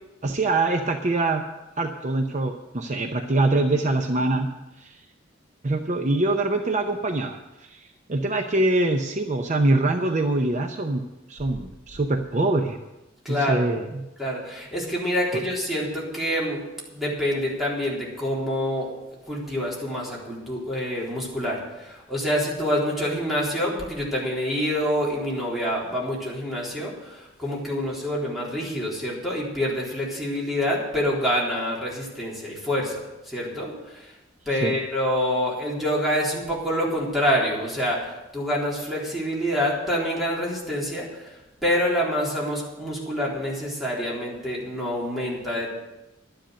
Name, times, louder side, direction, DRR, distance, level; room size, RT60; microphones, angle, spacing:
voice 1, 0.2-1.4 1.8-4.5 4.8-5.0 5.6-11.0 11.3-12.8 13.3-13.8 15.3-15.4 34.5-34.8, right 2 dB, 40° right, 5 dB, 0.7 m, -24 dB
voice 2, 13.2-13.7 14.2-18.9 19.3-34.1 34.5-45.7, equal, ahead, -5 dB, 3.8 m, -27 dB
12.0 x 10.5 x 6.5 m, 0.99 s
head